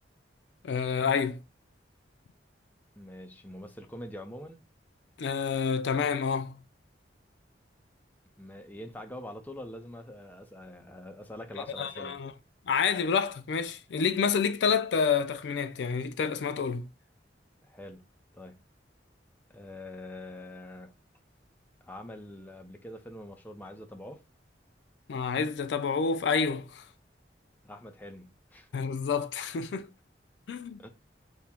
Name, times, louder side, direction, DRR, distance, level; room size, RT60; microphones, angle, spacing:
voice 1, 0.6-1.4 5.2-6.6 11.8-12.3 12.7-16.9 25.1-26.8 28.7-29.9 30.5-30.8, left 6 dB, 75° left, 0.4 m, -28 dB
voice 2, 3.0-4.6 8.4-12.2 17.6-18.1 18.3-18.6 19.5-20.9 21.8-24.2 27.6-28.7 30.8-30.9, left 1 dB, 10° left, 0.5 m, -44 dB
3.6 x 2.0 x 4.3 m
head